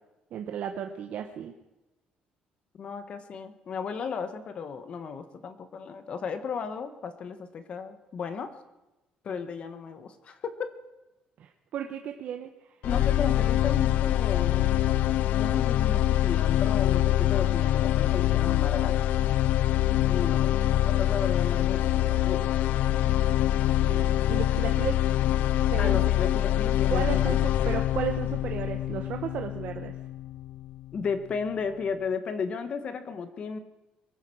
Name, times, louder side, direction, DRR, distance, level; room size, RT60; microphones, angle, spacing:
voice 1, 0.3-1.5 11.4-12.5 23.8-25.0 25.6-26.0 26.9-29.9, right 9 dB, 55° right, 5 dB, 1.0 m, -34 dB
voice 2, 2.8-8.5 9.2-10.7 12.8-14.8 15.3-18.9 20.1-22.4 25.8-27.4 30.9-33.6, left 6 dB, 40° left, 10 dB, 1.3 m, -34 dB
sound 1, 12.8-30.9, left 13 dB, 75° left, 0.4 m, -25 dB
22.5 x 9.8 x 6.3 m, 1.0 s
cardioid pair, 160°, 3 cm